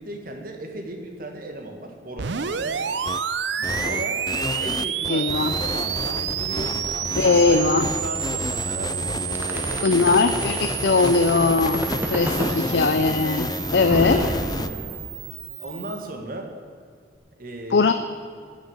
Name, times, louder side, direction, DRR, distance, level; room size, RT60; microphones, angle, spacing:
voice 1, 0.0-2.9 3.6-4.2 4.6-10.8 12.2-13.3 13.9-15.0 15.6-16.5 17.4-17.9, right 1 dB, 50° right, 3 dB, 1.9 m, -36 dB
sound 1, 2.2-16.0, right 9 dB, 80° right, 0.6 m, -30 dB
sound 2, 3.0-3.2 3.6-14.7, left 3 dB, 20° left, 0.3 m, -31 dB
voice 2, 5.1-5.5 7.2-7.9 9.8-13.5 13.7-14.2 17.7-17.9, left 4 dB, 70° left, 8 dB, 0.5 m, -20 dB
sound 3, 9.4-12.6 13.9-15.3, right 1 dB, 10° right, 1.1 m, -28 dB
15.5 x 6.5 x 8.9 m, 2.1 s
head